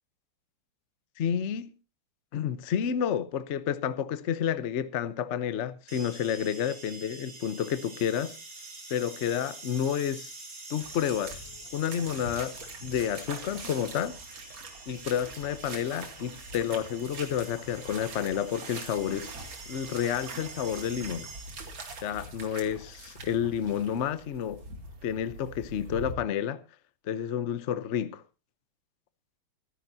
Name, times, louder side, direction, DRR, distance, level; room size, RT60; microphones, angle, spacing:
voice 1, 1.2-1.7 2.3-8.4 8.9-10.3 10.7-11.4 11.7-14.1 14.9-19.3 19.7-21.3 22.0-24.6 25.0-26.6 27.0-28.2, left 9 dB, 70° left, 0.6 m, -30 dB
sound 1, 5.9-21.8, right 3 dB, 45° right, 6.7 m, -46 dB
sound 2, 10.8-26.2, right 2 dB, 65° right, 3.0 m, -44 dB
24.5 x 10.0 x 2.7 m
omnidirectional pair, 2.3 m